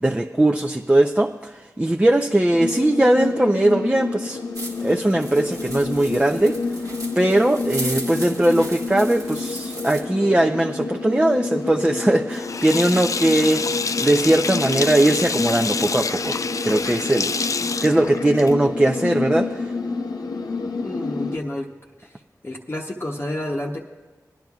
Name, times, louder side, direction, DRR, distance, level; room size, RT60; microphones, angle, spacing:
voice 1, 0.0-4.4 4.8-6.6 7.2-13.7 14.0-16.4 16.6-17.3 17.8-19.7, right 1 dB, 15° right, 2 dB, 0.5 m, -19 dB
sound 1, 2.5-21.4, left 3 dB, 85° left, 0.7 m, -29 dB
sound 2, 4.5-10.0, right 1 dB, 65° right, 1.5 m, -36 dB
Sink (filling or washing), 12.3-18.7, left 4 dB, 55° left, 0.3 m, -27 dB
voice 2, 20.8-21.7 22.0-22.1 22.4-23.8, left 1 dB, 35° left, -1 dB, 0.9 m, -29 dB
20.0 x 10.5 x 2.4 m, 1.3 s
cardioid pair, 40°, 7 cm